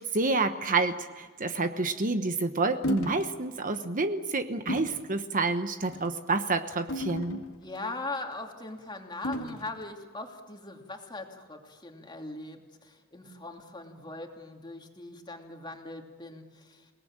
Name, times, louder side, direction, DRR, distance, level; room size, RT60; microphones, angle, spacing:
voice 1, 0.0-7.4, right 3 dB, 40° right, 8 dB, 1.1 m, -28 dB
sound 1, 2.8-3.3 3.7-3.9 4.7-5.1 5.8-6.1 6.9-7.8 9.2-9.8, equal, 90° left, 2.1 m, -34 dB
voice 2, 7.6-16.9, left 2 dB, 20° left, 2 dB, 2.8 m, -40 dB
29.0 x 19.0 x 8.9 m, 1.5 s
head